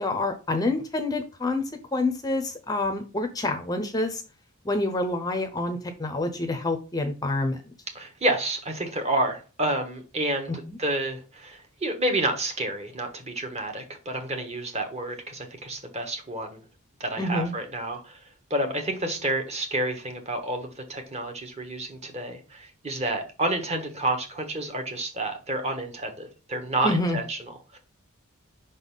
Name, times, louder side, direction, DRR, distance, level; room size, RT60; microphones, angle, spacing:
voice 1, 0.0-4.2 4.6-7.7 10.7-10.8 17.2-17.5 26.8-27.2, left 2 dB, 15° left, 0.6 m, -27 dB
voice 2, 7.9-16.6 17.0-18.2 18.5-27.8, right 1 dB, 30° right, 1.3 m, -29 dB
5.5 x 4.1 x 5.4 m
head